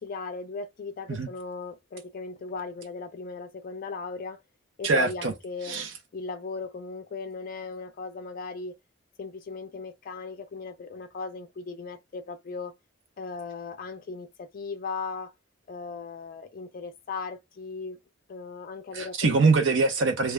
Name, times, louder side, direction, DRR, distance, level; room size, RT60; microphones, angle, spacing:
voice 1, 0.0-4.4 4.8-5.9 6.1-8.8 9.2-12.7 13.2-15.3 15.7-18.0 18.3-19.3, left 4 dB, 45° left, 0.4 m, -37 dB
voice 2, 4.8-5.3 5.7-5.9 18.9-20.3, right 3 dB, 75° right, 0.6 m, -23 dB
2.3 x 2.2 x 3.1 m
head